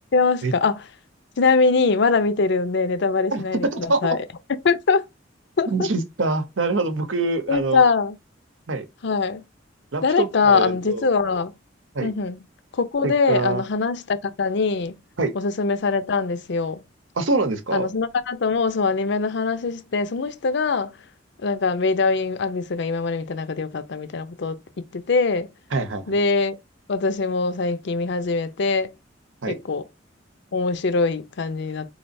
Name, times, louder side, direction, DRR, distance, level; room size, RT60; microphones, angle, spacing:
voice 1, 0.1-0.8 1.4-4.2 4.6-5.0 5.6-5.9 7.5-8.1 9.0-9.4 10.0-11.5 12.0-12.4 12.7-15.0 15.3-16.8 17.7-20.9 21.4-25.5 26.1-26.6 26.9-28.9 29.5-29.8 30.5-31.9, left 4 dB, 65° left, 0.5 m, -22 dB
voice 2, 5.7-7.8 8.7-8.9 9.9-11.1 11.9-12.1 13.0-13.6 15.2-15.3 17.2-17.9 25.7-26.2 29.4-29.6, right 3 dB, 90° right, 0.8 m, -24 dB
4.1 x 3.2 x 2.6 m
head